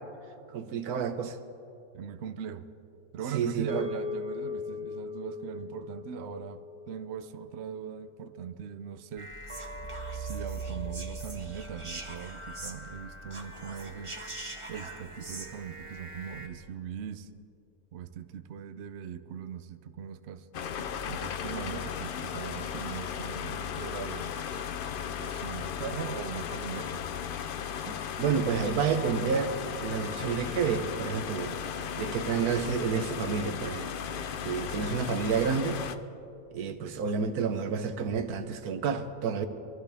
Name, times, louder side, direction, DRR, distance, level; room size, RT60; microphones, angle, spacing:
voice 1, 0.5-1.4 3.3-3.9 27.9-29.5 29.8-31.5 32.0-33.9 34.4-35.8 36.5-39.5, right 6 dB, 90° right, 9 dB, 1.3 m, -29 dB
voice 2, 1.9-2.7 3.1-9.3 10.1-14.1 14.7-17.3 17.9-20.5 21.1-24.4 25.2-27.1, right 8 dB, 60° right, 10 dB, 0.8 m, -40 dB
sound 1, 3.7-8.2, left 4 dB, 5° right, 1.8 m, -39 dB
sound 2, 9.2-16.5, right 3 dB, 25° right, 1.0 m, -40 dB
sound 3, 20.5-35.9, left 8 dB, 75° left, 0.4 m, -36 dB
23.0 x 13.0 x 3.4 m, 2.7 s
omnidirectional pair, 1.5 m